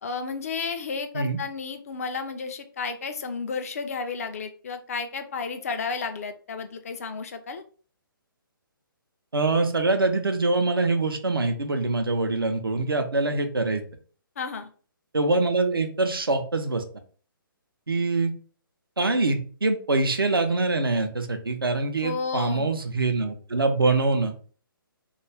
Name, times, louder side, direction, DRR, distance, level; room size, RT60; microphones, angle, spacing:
voice 1, 0.0-7.6 14.4-14.7 22.0-22.7, left 5 dB, 40° left, 7 dB, 0.4 m, -32 dB
voice 2, 9.3-13.8 15.1-16.8 17.9-18.3 19.0-24.3, right 3 dB, 75° right, 6 dB, 0.5 m, -24 dB
2.4 x 2.2 x 3.1 m, 0.43 s
figure-of-eight pair, 135°, 12 cm